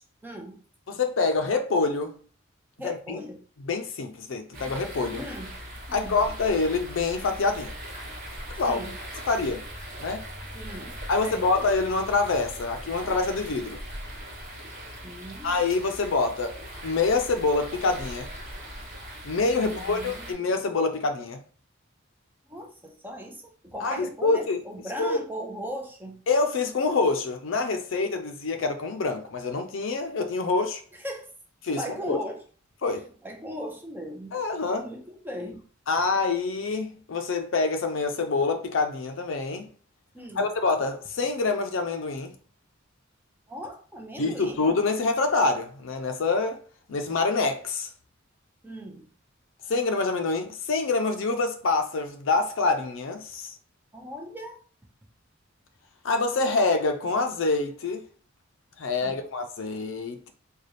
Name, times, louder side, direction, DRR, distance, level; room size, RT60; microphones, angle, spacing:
voice 1, 0.2-0.6 2.8-3.4 5.1-5.5 5.9-6.2 8.6-8.9 10.5-11.0 11.2-11.6 15.0-15.6 19.6-20.3 22.5-26.2 31.0-31.3 31.7-32.4 33.2-34.3 34.8-35.6 40.1-40.4 43.5-44.6 48.6-49.1 53.9-54.6 59.0-59.2, equal, 10° right, 0.6 m, -38 dB
voice 2, 0.9-2.2 2.8-3.2 3.6-5.2 5.9-7.7 8.6-8.8 9.3-9.6 10.0-10.3 11.1-13.8 15.4-16.6 16.8-18.3 19.3-21.4 23.8-24.6 25.0-25.2 26.3-30.8 31.6-31.8 32.1-32.2 32.8-33.0 34.3-34.9 35.9-39.7 40.4-42.3 44.2-46.6 46.9-47.9 49.7-53.6 56.0-58.0 58.8-60.3, left 3 dB, 70° left, 0.5 m, -26 dB
sound 1, 4.5-20.3, equal, 45° right, 1.1 m, -40 dB
4.0 x 2.3 x 3.2 m
head